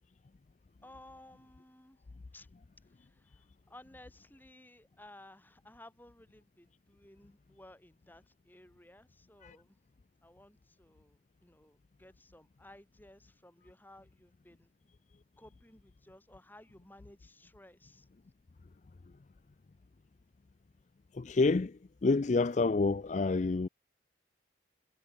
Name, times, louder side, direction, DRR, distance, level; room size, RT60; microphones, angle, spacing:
voice 1, 0.8-2.1 2.3-2.5 2.8-9.8 10.2-14.9 15.4-18.1, left 1 dB, 10° left, 4.0 m, -57 dB
voice 2, 21.2-21.7 22.0-23.7, left 3 dB, 40° left, 0.4 m, -28 dB
head